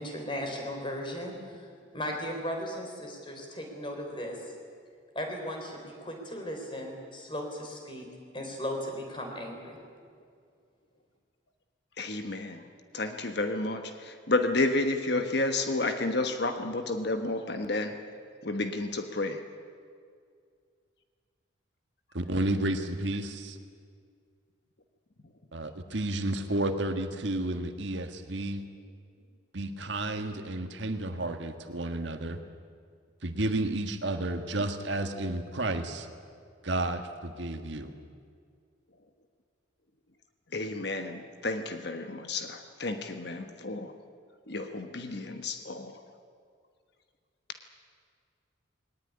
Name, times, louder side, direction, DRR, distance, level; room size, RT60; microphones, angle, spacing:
voice 1, 0.0-1.3 1.9-4.4 5.1-8.1 8.3-9.8, equal, 25° left, 2 dB, 4.1 m, -36 dB
voice 2, 12.0-12.6 12.9-13.8 14.3-17.9 18.4-19.4 40.5-43.9 44.5-45.9, left 2 dB, 55° left, 7 dB, 1.2 m, -31 dB
voice 3, 22.1-23.5 25.5-28.6 29.5-32.4 33.2-36.1 36.6-37.9, right 2 dB, 65° right, 7 dB, 1.6 m, -31 dB
21.0 x 19.0 x 9.8 m, 2.2 s
head